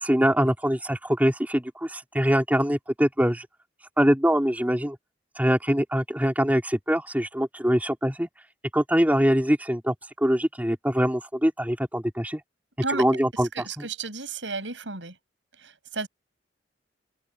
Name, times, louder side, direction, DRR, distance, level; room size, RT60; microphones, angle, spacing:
voice 1, 0.0-3.5 4.0-5.0 5.4-8.3 8.7-12.4 12.9-13.5 13.8-13.9, equal, 10° right, 3.7 m, -23 dB
voice 2, 13.5-15.1 15.6-16.1, right 4 dB, 85° right, 6.5 m, -32 dB
open air
head